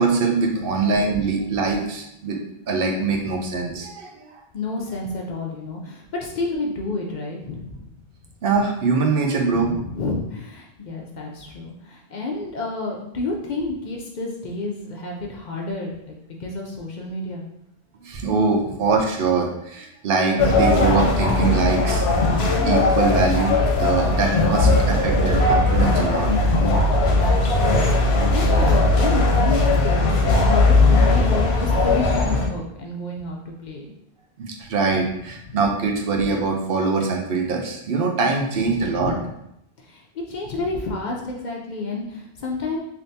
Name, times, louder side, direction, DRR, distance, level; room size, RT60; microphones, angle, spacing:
voice 1, 0.0-2.4 2.7-4.3 8.4-9.7 18.0-26.3 34.4-39.2, right 4 dB, 65° right, 2 dB, 0.7 m, -23 dB
voice 2, 4.5-8.0 9.5-17.4 24.6-25.1 27.1-33.9 35.0-35.1 35.4-35.6 38.6-39.2 39.8-42.8, left 2 dB, 55° left, 0 dB, 0.6 m, -30 dB
sound 1, 20.4-32.5, left 2 dB, 75° left, 0.9 m, -18 dB
3.4 x 2.8 x 2.6 m, 0.78 s
omnidirectional pair, 1.1 m